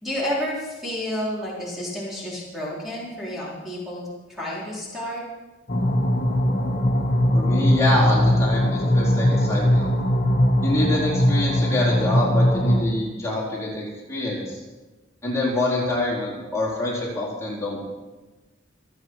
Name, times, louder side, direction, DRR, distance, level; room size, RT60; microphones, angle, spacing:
voice 1, 0.0-5.2, left 1 dB, ahead, -7 dB, 4.1 m, -30 dB
sound 1, 5.7-12.8, equal, 45° left, 1.6 m, -20 dB
voice 2, 7.3-9.9 10.6-14.6 15.2-17.8, left 1 dB, 15° left, -6 dB, 4.4 m, -26 dB
27.0 x 9.0 x 4.8 m, 1.2 s
head